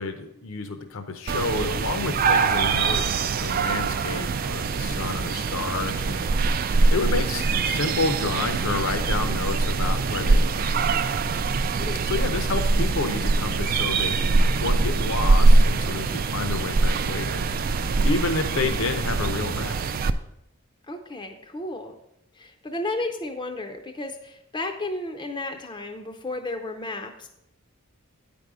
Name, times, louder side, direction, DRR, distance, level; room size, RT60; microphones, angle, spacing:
voice 1, 0.0-10.7 11.2-11.6 12.0-17.5 18.0-19.8, left 3 dB, 65° left, 7 dB, 0.7 m, -30 dB
sound 1, 1.3-20.1, right 3 dB, 40° right, 0.3 m, -23 dB
voice 2, 20.9-21.9 22.3-27.3, left 2 dB, 20° left, 4 dB, 0.5 m, -33 dB
9.2 x 5.3 x 4.8 m, 0.80 s
head